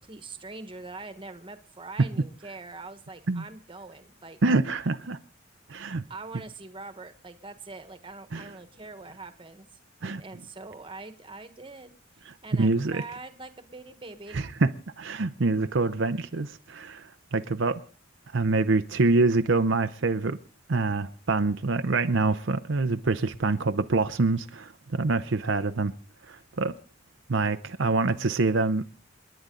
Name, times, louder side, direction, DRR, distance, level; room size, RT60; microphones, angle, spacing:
voice 1, 0.0-4.4 6.1-9.6 10.0-14.5, right 3 dB, 25° right, 1.4 m, -43 dB
voice 2, 4.4-5.2 5.7-6.0 8.3-8.5 10.0-10.2 12.5-13.0 14.3-14.7 15.0-17.8 18.3-20.4 20.7-25.9 26.3-26.7 27.3-28.9, right 3 dB, 70° right, 0.7 m, -25 dB
29.0 x 10.5 x 3.9 m
head